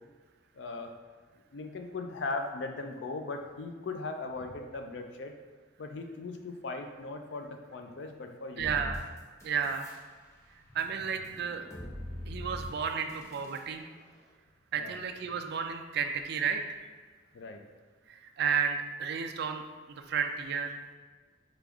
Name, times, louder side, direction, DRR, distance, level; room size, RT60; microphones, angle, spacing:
voice 1, 0.5-0.9 1.5-5.3 5.8-8.8 14.8-14.9 17.3-17.6, left 3 dB, 60° left, 5 dB, 0.4 m, -38 dB
sound 1, 8.6-10.0 10.3-13.6, left 1 dB, 15° left, 0.5 m, -43 dB
voice 2, 8.6-9.0 9.4-9.9 10.7-11.6 12.3-13.9 14.7-16.8 18.1-20.8, right 6 dB, 55° right, 6 dB, 0.3 m, -32 dB
5.1 x 2.3 x 3.5 m, 1.4 s
head